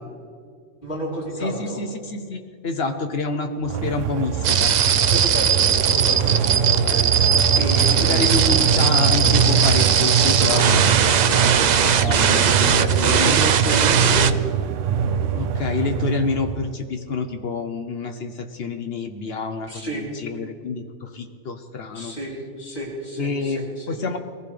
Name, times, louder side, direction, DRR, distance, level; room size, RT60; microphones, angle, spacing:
voice 1, 0.8-1.8 5.1-7.2 7.6-8.8 10.3-10.7 11.1-14.3 19.7-20.0 21.9-24.0, right 1 dB, 45° left, -5 dB, 3.9 m, -31 dB
voice 2, 1.4-4.7 8.0-10.8 11.1-11.2 11.8-13.4 15.3-22.1 23.2-24.2, left 4 dB, 60° left, 6 dB, 1.0 m, -28 dB
sound 1, 3.6-16.7, right 7 dB, 85° right, 1.0 m, -22 dB
sound 2, 4.4-14.3, right 8 dB, 60° right, 0.4 m, -19 dB
22.5 x 15.0 x 3.3 m, 2.2 s
omnidirectional pair, 1.2 m